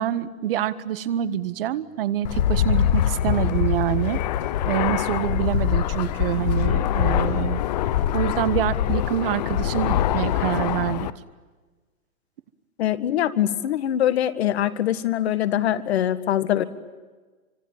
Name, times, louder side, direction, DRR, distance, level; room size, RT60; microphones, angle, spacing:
voice 1, 0.0-4.2 4.7-7.6 8.1-11.1, right 11 dB, 40° right, 15 dB, 1.5 m, -26 dB
Fixed-wing aircraft airplane, 2.2-11.1, left 11 dB, 30° left, 0.8 m, -23 dB
voice 2, 12.8-16.6, left 11 dB, 50° left, 13 dB, 1.9 m, -23 dB
25.5 x 25.5 x 9.0 m, 1.3 s
hypercardioid pair, 155°, 42 cm